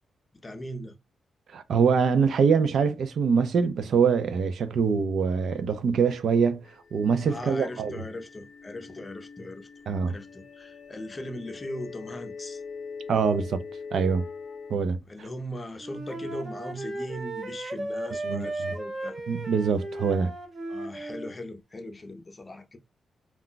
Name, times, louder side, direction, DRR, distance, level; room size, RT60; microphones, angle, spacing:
voice 1, 0.4-0.9 7.3-9.7 10.1-12.6 15.1-19.2 20.7-22.8, left 1 dB, 20° left, 0.6 m, -39 dB
voice 2, 1.5-6.6 6.9-8.0 9.9-10.2 13.1-13.6 13.9-14.2 14.7-15.0 18.2-18.5 19.3-20.3, right 6 dB, 65° right, 0.4 m, -24 dB
sound 1, 5.1-14.8, left 5 dB, 70° left, 0.4 m, -44 dB
Wind instrument woodwind instrument, 15.8-21.3, right 2 dB, 35° right, 0.7 m, -35 dB
2.3 x 2.1 x 3.8 m
cardioid pair, 125°, 0 cm